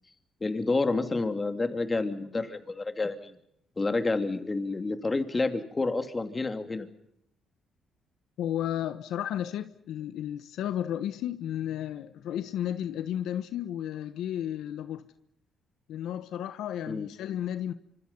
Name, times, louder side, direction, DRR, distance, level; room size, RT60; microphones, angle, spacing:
voice 1, 0.4-3.4 3.8-6.9 16.9-17.1, left 3 dB, 25° left, 2.8 m, -29 dB
voice 2, 8.4-15.0 15.9-17.7, left 11 dB, 85° left, 1.2 m, -33 dB
27.0 x 25.5 x 5.5 m
cardioid pair, 90°, 0 cm